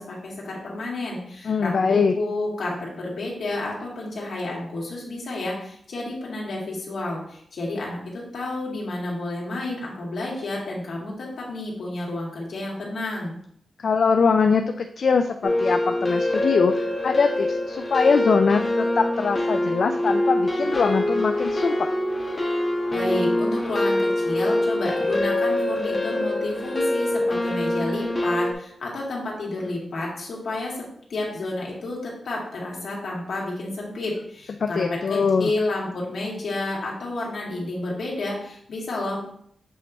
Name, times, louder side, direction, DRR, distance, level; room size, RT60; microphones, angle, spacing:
voice 1, 0.0-13.3 22.9-30.7 31.1-39.2, left 2 dB, 80° left, -3 dB, 2.1 m, -30 dB
voice 2, 1.5-2.1 13.8-21.9 34.6-35.5, left 5 dB, 65° left, 6 dB, 0.4 m, -22 dB
sound 1, 15.4-28.5, left 1 dB, 20° left, 1.1 m, -24 dB
7.6 x 3.3 x 4.1 m, 0.66 s
wide cardioid pair, 130°, 0 cm